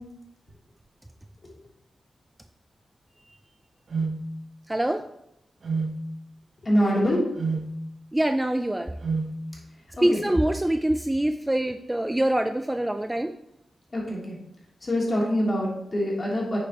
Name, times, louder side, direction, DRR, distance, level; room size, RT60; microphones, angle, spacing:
sound 1, 3.9-4.2 5.6-6.0 7.4-7.7 9.0-9.3, right 4 dB, 50° right, 0.8 m, -27 dB
voice 1, 4.7-5.0 8.1-8.9 10.0-13.3, right 1 dB, 10° right, 7 dB, 0.4 m, -24 dB
voice 2, 6.6-7.2 10.0-10.2 13.9-14.4 14.8-16.6, equal, 30° left, -4 dB, 3.1 m, -24 dB
8.9 x 6.9 x 3.0 m, 0.80 s
wide cardioid pair, 100°, 0 cm